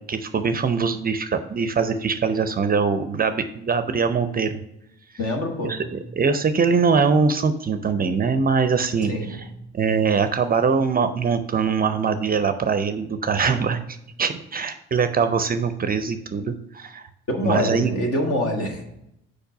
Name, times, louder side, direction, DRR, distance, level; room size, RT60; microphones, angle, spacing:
voice 1, 0.0-4.6 5.6-9.4 9.7-13.8 14.2-17.0 17.4-18.0, right 5 dB, 30° right, 10 dB, 0.5 m, -22 dB
voice 2, 5.2-6.0 9.0-9.5 17.3-18.8, left 1 dB, 55° left, 4 dB, 1.5 m, -25 dB
4.9 x 4.5 x 4.8 m, 0.80 s
hypercardioid pair, 50°, 30 cm